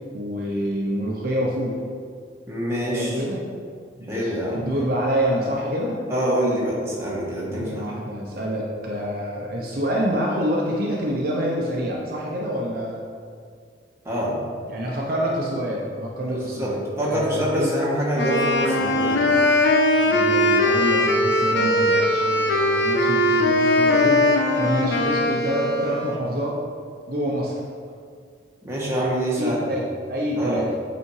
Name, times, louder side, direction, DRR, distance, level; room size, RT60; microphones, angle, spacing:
voice 1, 0.1-1.8 2.9-3.4 4.0-6.0 7.5-13.0 14.6-17.7 20.0-24.2 24.6-26.6 27.1-27.6 29.4-29.8 30.1-30.7, equal, 50° right, -3 dB, 0.9 m, -27 dB
voice 2, 2.5-3.2 4.1-4.7 6.1-7.9 14.0-14.4 16.3-19.4 28.6-29.6 30.4-30.6, equal, 15° right, -6 dB, 1.5 m, -25 dB
Wind instrument woodwind instrument, 18.2-26.3, left 1 dB, 70° left, 0.8 m, -20 dB
8.3 x 4.2 x 4.8 m, 2.1 s
head